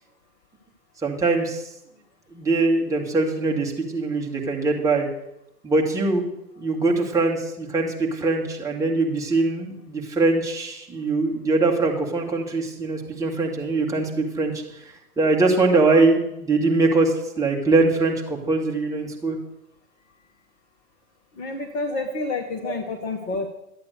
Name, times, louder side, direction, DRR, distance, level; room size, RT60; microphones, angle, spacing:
voice 1, 1.0-1.7 2.3-5.1 5.6-6.2 6.6-19.4 21.9-22.0 22.6-22.8, right 3 dB, 5° right, -1 dB, 1.9 m, -22 dB
voice 2, 21.4-23.5, left 3 dB, 25° left, 4 dB, 1.2 m, -29 dB
12.5 x 8.4 x 6.7 m, 0.83 s
figure-of-eight pair, 120°, 47 cm